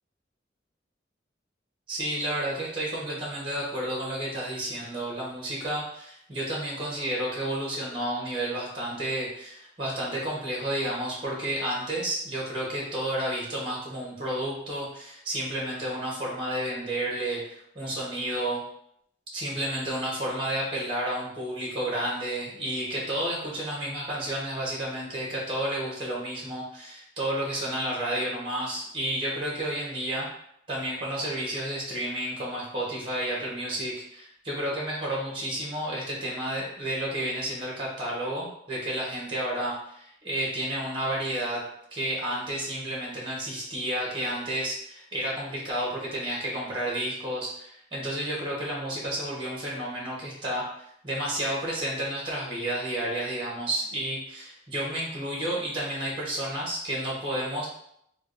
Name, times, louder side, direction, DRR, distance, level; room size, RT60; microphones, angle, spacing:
voice 1, 1.9-18.6 19.3-30.3 30.7-41.6 41.9-57.7, right 1 dB, 30° right, -4 dB, 0.9 m, -31 dB
4.5 x 2.2 x 2.5 m, 0.73 s
head